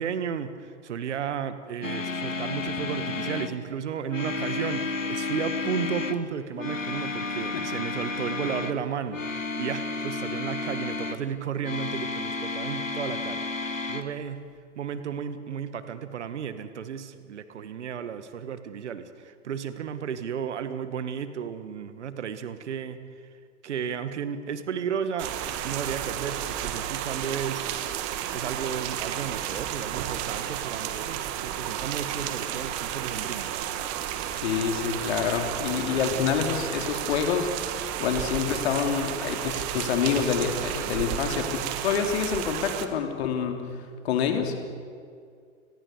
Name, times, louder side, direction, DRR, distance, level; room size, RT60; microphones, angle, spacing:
voice 1, 0.0-14.4 14.8-23.0 23.6-25.3 25.6-27.7 28.3-33.5, right 7 dB, 65° right, 11 dB, 1.8 m, -33 dB
sound 1, 1.8-3.6 4.1-6.2 6.6-8.8 9.1-11.2 11.6-14.0, left 3 dB, 85° left, 1.6 m, -32 dB
sound 2, 25.2-42.9, right 10 dB, 40° right, 1.8 m, -32 dB
voice 2, 34.3-37.5 38.0-43.6 44.0-44.5, left 7 dB, 55° left, 5 dB, 3.3 m, -27 dB
29.5 x 20.5 x 6.8 m, 2.2 s
figure-of-eight pair, 95°, 38 cm